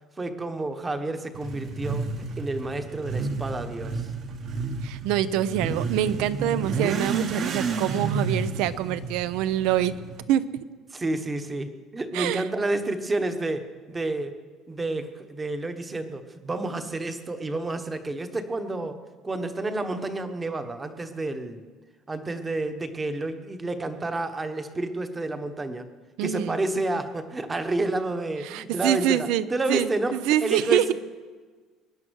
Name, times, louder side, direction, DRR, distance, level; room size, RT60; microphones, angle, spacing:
voice 1, 0.2-2.1 2.4-4.1 10.9-14.3 14.7-19.0 19.2-21.6 22.1-25.9 26.2-30.1 30.4-30.9, right 2 dB, 15° right, 8 dB, 1.1 m, -30 dB
Motorcycle / Accelerating revving vroom, 1.3-10.2, right 4 dB, 35° right, 1.1 m, -31 dB
voice 2, 4.8-9.9 10.3-10.6 12.1-12.5 26.2-26.6 28.4-30.9, right 12 dB, 70° right, 15 dB, 0.7 m, -25 dB
22.0 x 10.5 x 6.4 m, 1.4 s
cardioid pair, 170°, 0 cm